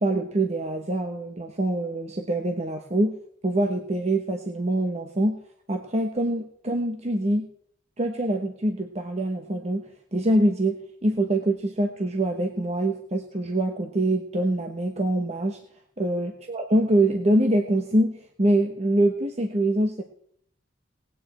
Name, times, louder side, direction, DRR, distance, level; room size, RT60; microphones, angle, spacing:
voice 1, 0.0-3.2 3.4-5.4 5.7-7.5 8.0-15.6 16.0-20.0, right 1 dB, 35° right, 4 dB, 1.1 m, -24 dB
18.5 x 9.3 x 4.4 m, 0.65 s
head